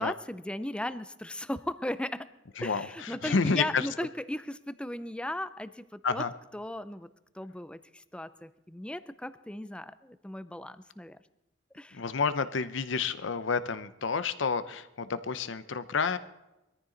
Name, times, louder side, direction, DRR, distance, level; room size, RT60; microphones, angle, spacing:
voice 1, 0.0-2.3 2.6-6.2 6.5-7.1 7.3-11.2 11.7-12.0, left 1 dB, 5° left, 13 dB, 0.5 m, -37 dB
voice 2, 2.6-3.9 6.0-6.3 11.9-16.2, left 5 dB, 75° left, 13 dB, 0.7 m, -30 dB
21.0 x 14.0 x 3.9 m, 0.98 s
head